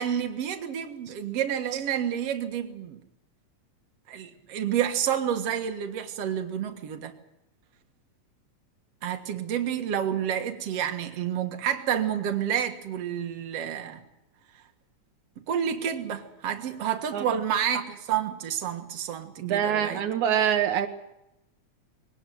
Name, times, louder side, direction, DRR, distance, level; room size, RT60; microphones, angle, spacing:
voice 1, 0.0-3.0 4.1-7.1 9.0-14.0 15.5-20.0, right 9 dB, 60° right, 5 dB, 2.6 m, -29 dB
voice 2, 19.4-20.9, right 9 dB, 80° right, 7 dB, 2.5 m, -24 dB
22.0 x 18.0 x 9.3 m, 0.91 s
omnidirectional pair, 3.3 m